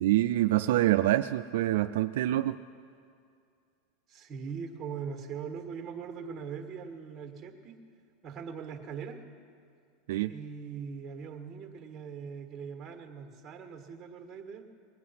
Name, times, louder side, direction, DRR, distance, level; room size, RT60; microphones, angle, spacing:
voice 1, 0.0-2.6 10.1-10.3, right 14 dB, 75° right, 9 dB, 0.3 m, -26 dB
voice 2, 4.1-7.7 8.2-9.2 10.3-14.7, right 6 dB, 25° right, 5 dB, 1.5 m, -41 dB
20.0 x 9.5 x 5.7 m, 2.3 s
supercardioid pair, 140°, 0 cm